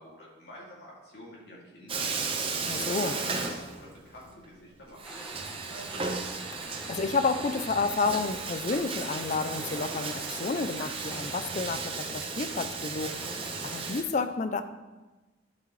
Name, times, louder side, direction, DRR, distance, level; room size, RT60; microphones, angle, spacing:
voice 1, 0.0-2.1 2.5-6.1, equal, 55° left, -5 dB, 2.5 m, -47 dB
Bathtub (filling or washing), 1.9-4.2 4.4-4.5 5.0-14.0, right 4 dB, 30° right, 0.6 m, -35 dB
voice 2, 2.7-3.2 6.9-13.2 13.7-14.6, left 4 dB, 40° left, 10 dB, 0.4 m, -30 dB
sound 1, 5.0-13.9, right 1 dB, 5° right, 1.5 m, -46 dB
11.5 x 5.2 x 3.2 m, 1.2 s
head